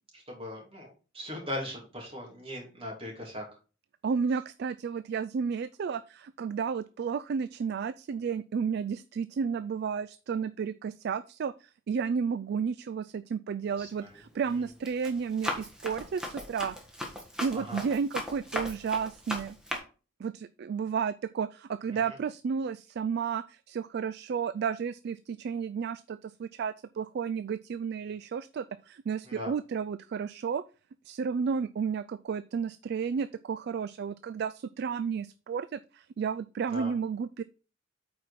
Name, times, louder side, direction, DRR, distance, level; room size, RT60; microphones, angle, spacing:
voice 1, 0.1-0.9 1.1-3.4 13.8-14.1 14.5-14.6 17.5-17.8 21.9-22.1 29.2-29.5 36.7-36.9, left 1 dB, 30° right, -1 dB, 2.9 m, -39 dB
voice 2, 4.0-16.8 17.4-19.6 20.2-30.6 31.0-37.4, right 6 dB, 55° right, 14 dB, 0.3 m, -32 dB
Run, 13.7-14.0 14.5-19.8, left 1 dB, 5° right, 1.5 m, -38 dB
8.5 x 4.7 x 4.1 m, 0.35 s
head